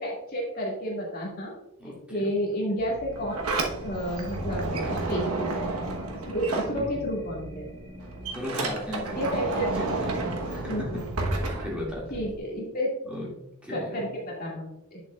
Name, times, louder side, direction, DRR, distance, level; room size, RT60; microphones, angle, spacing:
voice 1, 0.0-1.5 2.1-3.6 3.8-5.8 6.3-7.8 9.1-10.0 10.6-11.0 12.1-12.9 13.7-15.0, equal, 45° left, -3 dB, 2.1 m, -31 dB
voice 2, 1.8-2.3 6.7-6.9 8.3-9.2 9.8-11.0 11.3-12.0 13.1-13.3 13.6-14.0, left 1 dB, 5° right, -5 dB, 2.2 m, -36 dB
sound 1, 2.8-8.4, right 1 dB, 25° right, 0.9 m, -44 dB
Sliding door, 3.0-7.3 7.6-12.4, right 2 dB, 85° right, 1.2 m, -31 dB
8.4 x 7.1 x 2.4 m, 0.81 s
head